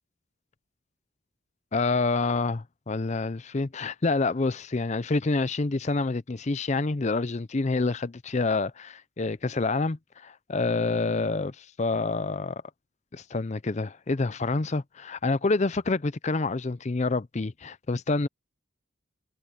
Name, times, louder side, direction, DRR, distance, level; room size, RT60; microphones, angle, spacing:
voice 1, 1.7-12.6 13.1-18.3, left 3 dB, 35° left, 0.5 m, -27 dB
head